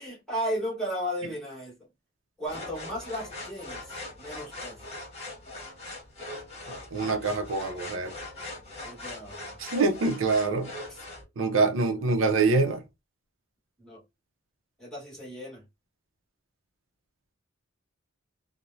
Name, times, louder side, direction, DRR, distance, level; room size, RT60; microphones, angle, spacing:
voice 1, 0.0-1.7 2.4-3.9 4.2-4.8 8.8-9.6 10.9-11.0 13.8-14.0 14.8-15.6, equal, 5° left, 1.3 m, -35 dB
sound 1, 2.5-11.2, left 2 dB, 35° left, 1.2 m, -41 dB
voice 2, 6.9-8.1 9.6-10.7 11.4-12.8, right 3 dB, 90° right, 0.5 m, -25 dB
3.0 x 2.1 x 2.6 m
head